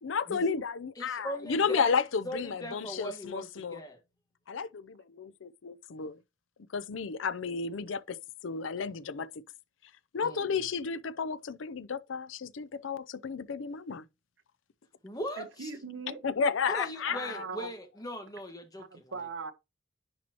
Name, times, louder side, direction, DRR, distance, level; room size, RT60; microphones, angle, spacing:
voice 1, 0.0-3.8 4.5-6.2 6.7-9.4 10.1-14.0 16.2-17.4, left 5 dB, 80° left, 0.5 m, -32 dB
voice 2, 1.0-2.0 2.2-4.0 10.2-10.6 15.0-15.7 16.7-19.1, equal, 20° left, 1.5 m, -39 dB
voice 3, 15.4-16.2 17.1-17.7 18.8-19.5, right 4 dB, 70° right, 0.9 m, -40 dB
10.5 x 4.4 x 2.9 m
head